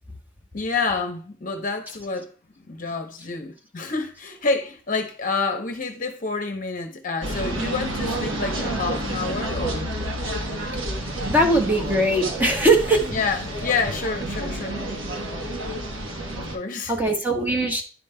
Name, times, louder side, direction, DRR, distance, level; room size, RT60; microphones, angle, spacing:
voice 1, 0.5-2.3 2.6-9.9 13.1-14.8 16.4-16.9, left 4 dB, 40° left, 0.8 m, -28 dB
sound 1, 7.2-16.6, right 1 dB, 80° right, 1.1 m, -29 dB
voice 2, 11.3-13.1 16.9-17.8, right 1 dB, 10° right, 1.0 m, -20 dB
10.5 x 5.2 x 2.2 m
head